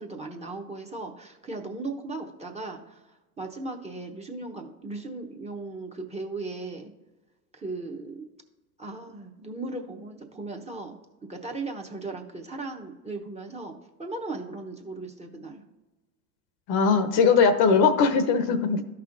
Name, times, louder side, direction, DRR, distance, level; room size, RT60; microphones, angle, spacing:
voice 1, 0.0-3.0 3.4-6.9 7.5-8.2 8.8-13.7 14.0-15.6, right 3 dB, 15° right, 1 dB, 0.8 m, -37 dB
voice 2, 16.7-18.8, left 5 dB, 50° left, 10 dB, 0.8 m, -20 dB
13.0 x 5.6 x 2.6 m, 1.1 s
hypercardioid pair, 90°, 48 cm